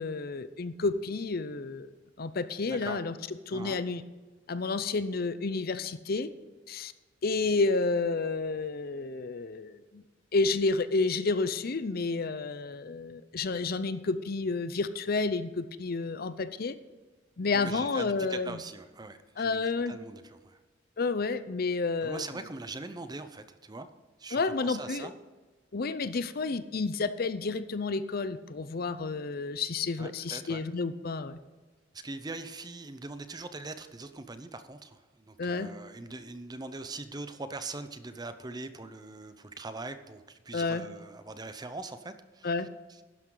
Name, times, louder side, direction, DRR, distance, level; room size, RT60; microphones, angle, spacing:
voice 1, 0.0-1.9 2.2-3.2 3.5-4.0 4.5-6.3 6.7-6.9 7.2-10.0 10.3-16.7 17.4-18.6 19.4-20.0 21.0-22.2 24.3-25.1 25.7-31.4 35.4-35.7 40.5-40.9 42.4-42.7, left 3 dB, 50° left, 13 dB, 0.6 m, -30 dB
voice 2, 2.7-3.0 3.5-3.8 17.5-20.6 22.0-23.9 24.2-25.1 30.0-30.6 31.9-42.5, right 3 dB, 20° right, 10 dB, 0.7 m, -42 dB
12.0 x 10.5 x 3.9 m, 1.3 s
head